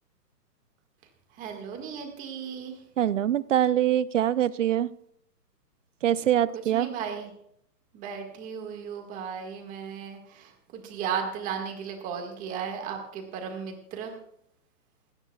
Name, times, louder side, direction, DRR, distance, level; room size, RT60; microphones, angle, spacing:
voice 1, 1.4-2.8 6.5-7.3 7.9-14.2, right 7 dB, 15° right, 3 dB, 1.8 m, -35 dB
voice 2, 3.0-4.9 6.0-6.9, right 11 dB, 50° right, 18 dB, 0.6 m, -24 dB
29.0 x 9.8 x 2.3 m, 0.70 s
hypercardioid pair, 160°, 50 cm